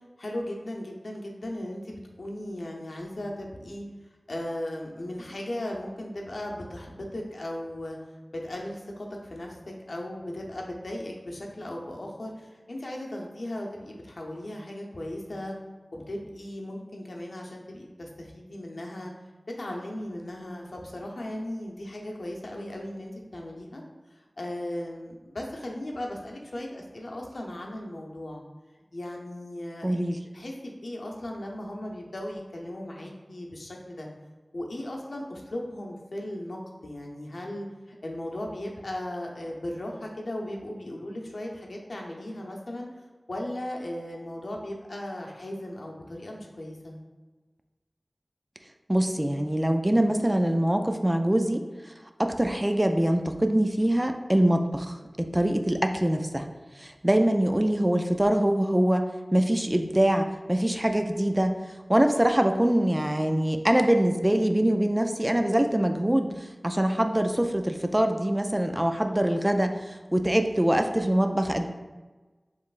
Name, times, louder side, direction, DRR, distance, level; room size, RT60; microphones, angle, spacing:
voice 1, 0.2-3.8 4.3-8.0 8.3-15.5 15.9-19.1 19.6-23.8 24.1-28.4 28.9-29.9 30.3-34.1 34.5-42.9 43.3-47.0 60.9-61.0, left 1 dB, 80° left, 0 dB, 0.6 m, -37 dB
voice 2, 29.8-30.2 48.9-51.6 52.2-56.5 56.8-61.6 61.9-66.3 66.6-71.7, right 1 dB, 20° right, 6 dB, 0.3 m, -24 dB
5.3 x 3.1 x 2.4 m, 1.2 s
wide cardioid pair, 60°, 0 cm